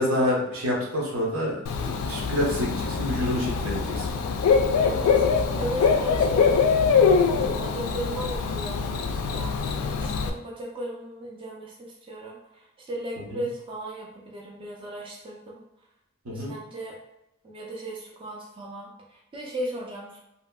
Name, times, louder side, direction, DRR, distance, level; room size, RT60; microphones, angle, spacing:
voice 1, 0.0-4.1 13.3-13.4 16.2-16.5, left 1 dB, 80° right, -3 dB, 0.8 m, -27 dB
Bird / Cricket, 1.7-10.3, left 5 dB, 85° left, 0.3 m, -23 dB
voice 2, 4.8-6.6 7.4-15.6 16.3-17.0 17.4-20.2, right 1 dB, 25° right, -3 dB, 0.4 m, -36 dB
2.7 x 2.5 x 2.2 m, 0.85 s
head